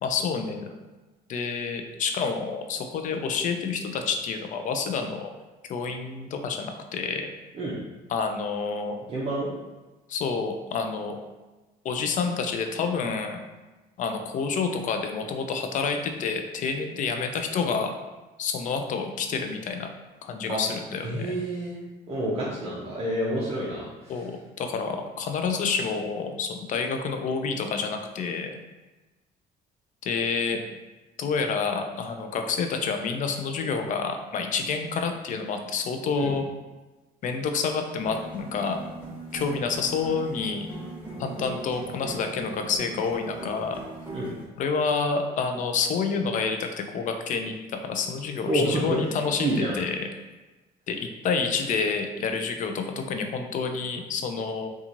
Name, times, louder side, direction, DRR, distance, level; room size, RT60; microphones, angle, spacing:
voice 1, 0.0-0.7 1.3-5.3 5.7-7.3 8.1-9.0 10.1-11.2 11.8-13.4 14.0-17.9 18.4-19.9 20.2-21.3 24.1-28.5 30.0-30.6 31.2-36.5 37.2-38.8 39.3-40.7 41.2-43.8 44.6-50.1 50.9-54.7, left 5 dB, 50° left, 5 dB, 0.4 m, -28 dB
voice 2, 9.1-9.5 20.5-20.6 21.0-21.8 22.1-24.1 36.1-36.3 44.1-44.3 48.5-48.8 49.4-49.8, right 1 dB, 40° right, -6 dB, 0.5 m, -28 dB
sound 1, 38.0-44.4, right 2 dB, 10° right, 0.9 m, -40 dB
2.9 x 2.3 x 2.5 m, 1.2 s
cardioid pair, 110°, 17 cm